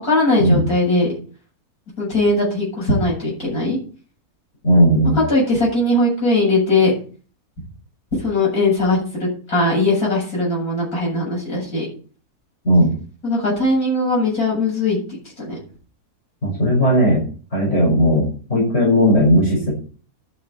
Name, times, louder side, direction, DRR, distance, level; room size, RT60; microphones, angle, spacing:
voice 1, 0.0-1.1 2.0-3.8 5.2-6.9 8.2-11.9 13.2-15.2 15.4-15.6, left 2 dB, 70° left, -4 dB, 8.7 m, -19 dB
voice 2, 4.6-5.2 12.6-12.9 16.4-17.2 17.5-19.7, equal, 50° left, -4 dB, 6.6 m, -16 dB
11.5 x 6.7 x 8.5 m, 0.40 s
omnidirectional pair, 1.6 m